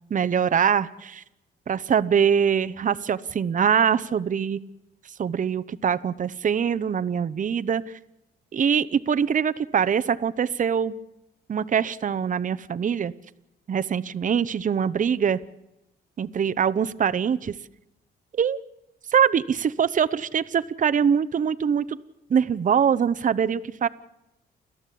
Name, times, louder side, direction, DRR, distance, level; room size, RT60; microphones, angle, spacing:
voice 1, 0.1-1.2 1.7-4.6 5.2-7.8 8.5-10.9 11.5-13.1 13.7-15.4 16.2-17.5 18.3-18.6 19.1-22.0 22.3-23.9, right 7 dB, 40° right, 13 dB, 0.8 m, -23 dB
29.5 x 12.5 x 8.5 m, 0.92 s
cardioid pair, 90°, 20 cm